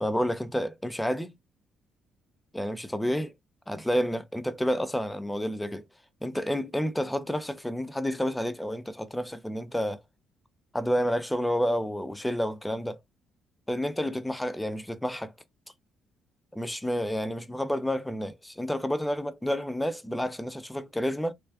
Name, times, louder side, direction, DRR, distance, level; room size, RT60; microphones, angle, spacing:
voice 1, 0.0-1.3 2.5-3.3 3.7-5.8 6.2-10.0 10.7-13.0 13.7-15.3 16.5-21.3, equal, 5° left, 0.7 m, -29 dB
3.3 x 3.2 x 2.3 m
cardioid pair, 90°, 0 cm